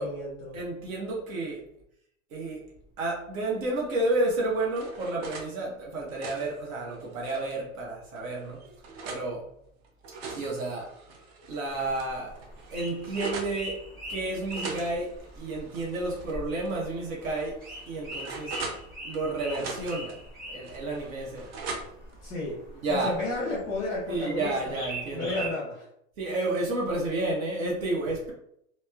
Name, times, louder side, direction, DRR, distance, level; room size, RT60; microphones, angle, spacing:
voice 1, 0.0-0.6 22.2-22.6 22.9-24.8 25.1-25.9, left 2 dB, 10° left, -6 dB, 0.5 m, -32 dB
voice 2, 0.5-1.6 2.3-2.6 3.0-8.6 9.0-9.5 10.3-10.9 11.5-12.4 12.7-13.8 14.1-17.6 17.9-18.6 19.0-20.2 20.5-21.5 22.8-23.2 24.1-25.4 26.2-28.3, right 2 dB, 80° right, -3 dB, 0.9 m, -31 dB
sound 1, 4.3-5.5 5.9-7.6 8.2-9.3 9.8-11.6 12.0-12.1 12.3-13.6 14.5-16.3 16.6-16.8 17.4-19.2 19.5-20.2 20.6-22.1, right 3 dB, 50° right, 0.5 m, -41 dB
sound 2, 11.7-25.5, right 1 dB, 20° right, 0.8 m, -43 dB
2.9 x 2.0 x 2.2 m, 0.73 s
supercardioid pair, 150°, 40 cm